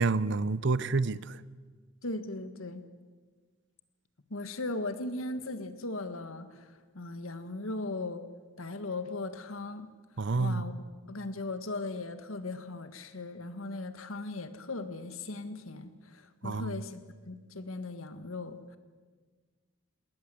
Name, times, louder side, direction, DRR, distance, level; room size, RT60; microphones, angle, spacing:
voice 1, 0.0-1.4 10.2-10.7 16.4-16.8, right 3 dB, 60° right, 0.7 m, -28 dB
voice 2, 2.0-2.8 4.3-8.2 8.6-9.9 10.4-10.7 11.1-17.0 17.3-18.8, left 2 dB, 85° left, 1.6 m, -38 dB
20.5 x 18.5 x 7.7 m
head